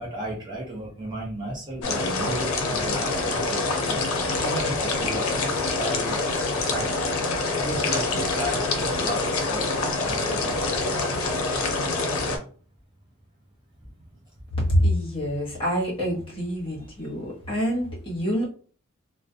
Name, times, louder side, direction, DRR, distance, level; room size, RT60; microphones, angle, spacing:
voice 1, 0.0-4.1 4.4-7.0 7.5-9.8 10.0-11.3, right 1 dB, 20° right, -4 dB, 0.6 m, -34 dB
sound 1, 1.8-12.4, left 3 dB, 85° left, 0.5 m, -26 dB
voice 2, 14.6-18.4, equal, 25° left, -6 dB, 1.0 m, -26 dB
2.3 x 2.1 x 2.6 m, 0.42 s
head